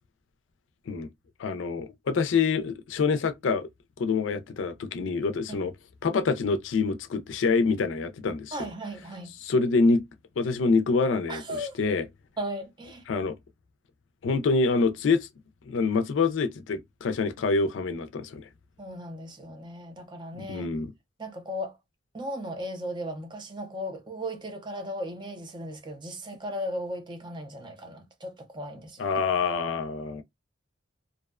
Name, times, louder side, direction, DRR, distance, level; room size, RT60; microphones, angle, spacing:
voice 1, 1.4-3.7 4.0-5.7 6.0-8.7 9.4-10.0 10.4-12.1 13.1-13.4 14.2-15.3 15.6-18.5 20.4-20.9 29.0-30.2, left 4 dB, 75° left, 0.4 m, -26 dB
voice 2, 8.5-9.3 11.3-11.8 12.4-13.0 18.8-20.7 21.2-21.8 22.1-29.1, equal, 25° right, 0.5 m, -36 dB
2.5 x 2.1 x 2.3 m
head